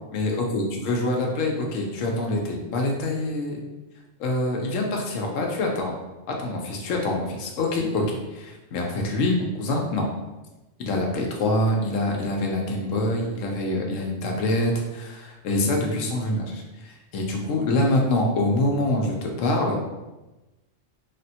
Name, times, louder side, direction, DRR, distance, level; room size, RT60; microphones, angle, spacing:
voice 1, 0.1-3.6 4.2-6.0 6.3-10.1 10.8-19.8, left 1 dB, 85° left, 1 dB, 1.0 m, -25 dB
3.4 x 2.1 x 2.7 m, 1.1 s
omnidirectional pair, 1.3 m